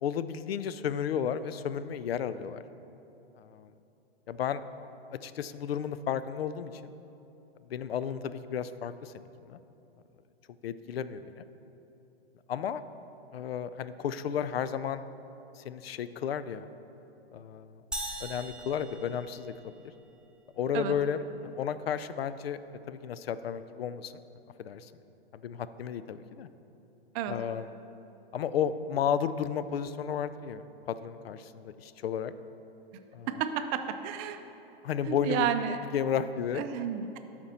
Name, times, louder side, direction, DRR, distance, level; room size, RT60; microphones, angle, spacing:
voice 1, 0.0-2.6 3.4-3.7 4.3-4.6 5.2-6.7 7.7-9.1 9.5-9.6 10.6-11.4 12.5-12.8 13.3-15.0 15.6-16.7 17.3-17.8 18.2-19.7 20.6-21.2 21.6-22.6 22.9-24.1 24.6-24.9 25.3-26.5 27.3-27.7 28.3-32.3 33.1-33.3 34.8-35.5 35.9-36.6, left 8 dB, 75° left, 13 dB, 0.4 m, -33 dB
sound 1, 17.9-19.8, right 1 dB, 5° right, 0.8 m, -40 dB
voice 2, 33.3-34.4 35.0-35.8 36.5-37.2, right 9 dB, 30° right, 8 dB, 0.5 m, -31 dB
12.5 x 4.3 x 4.2 m, 2.9 s
hypercardioid pair, 115°, 30 cm